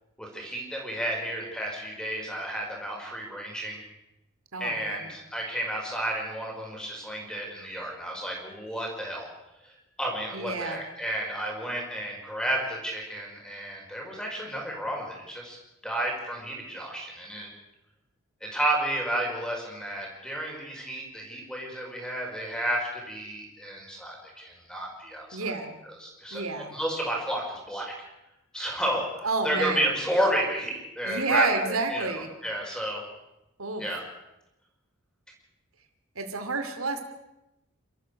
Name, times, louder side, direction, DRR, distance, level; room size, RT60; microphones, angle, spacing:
voice 1, 0.2-3.8 4.6-9.3 9.6-15.6 15.8-17.5 18.4-25.5 25.8-27.9 28.5-33.0 33.8-34.0, right 1 dB, 5° left, -1 dB, 5.1 m, -32 dB
voice 2, 4.5-5.1 10.3-10.8 25.3-25.8 26.3-26.8 29.2-29.8 31.0-32.3 33.6-33.8 36.2-37.0, right 3 dB, 90° right, 6 dB, 2.5 m, -29 dB
29.0 x 13.5 x 6.6 m, 0.92 s
head